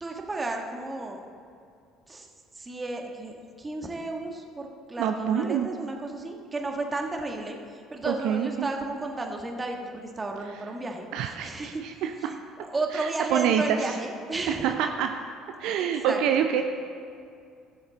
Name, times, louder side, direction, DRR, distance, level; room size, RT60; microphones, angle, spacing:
voice 1, 0.0-1.2 2.1-2.3 2.5-7.6 7.9-11.8 12.2-14.7 15.8-16.4, right 2 dB, 25° right, 2 dB, 1.4 m, -33 dB
voice 2, 5.0-5.7 8.0-8.7 11.1-12.3 12.9-13.9 14.5-15.1 15.6-16.6, right 8 dB, 65° right, 6 dB, 0.5 m, -26 dB
15.5 x 7.0 x 3.9 m, 2.3 s
hypercardioid pair, 55°, 0 cm